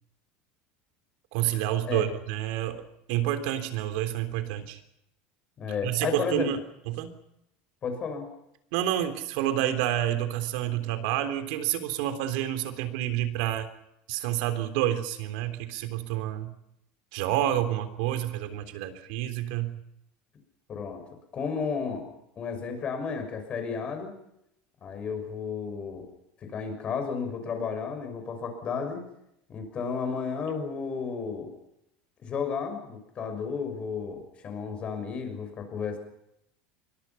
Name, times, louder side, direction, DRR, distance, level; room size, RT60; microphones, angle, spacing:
voice 1, 1.3-2.8 3.1-4.8 5.8-6.6 6.9-7.1 8.7-13.7 14.1-16.5 17.1-19.8, right 12 dB, 65° right, 8 dB, 3.6 m, -29 dB
voice 2, 5.6-6.5 7.8-8.3 20.7-21.0 21.3-22.1 22.4-24.1 24.8-26.1 26.4-29.0 29.5-31.5 32.2-36.0, left 5 dB, 25° left, 6 dB, 6.2 m, -32 dB
27.5 x 24.0 x 5.9 m, 0.80 s
cardioid pair, 175°, 5 cm